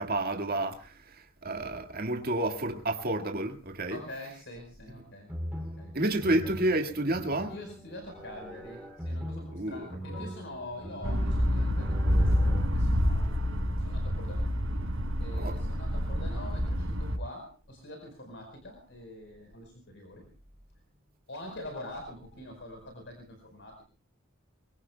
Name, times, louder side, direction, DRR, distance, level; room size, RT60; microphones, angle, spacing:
voice 1, 0.0-4.0 5.9-7.5 9.5-9.9 15.3-15.6, right 1 dB, 45° right, 1.8 m, -30 dB
voice 2, 3.9-5.3 5.6-5.9 6.2-6.4 7.4-14.5 15.2-20.3 21.3-23.8, left 1 dB, 60° left, 4.6 m, -45 dB
sound 1, 5.3-12.7, equal, 5° right, 3.0 m, -41 dB
sound 2, 11.0-17.2, equal, 80° right, 4.8 m, -28 dB
24.0 x 22.5 x 2.3 m
head